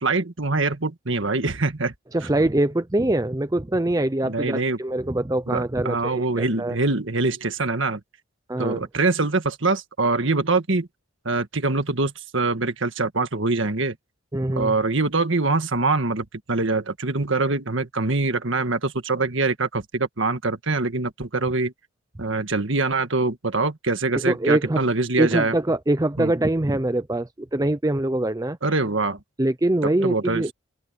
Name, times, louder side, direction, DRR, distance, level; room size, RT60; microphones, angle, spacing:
voice 1, 0.0-1.9 4.2-4.8 5.5-8.0 8.6-10.9 11.3-14.0 14.6-21.7 22.2-25.6 26.2-26.3 28.6-29.2 29.8-30.5, right 3 dB, 65° right, 1.7 m, -24 dB
voice 2, 2.1-6.8 8.5-8.8 14.3-14.7 24.1-24.8 25.2-28.6 29.4-30.5, right 1 dB, 15° right, 0.6 m, -23 dB
open air
head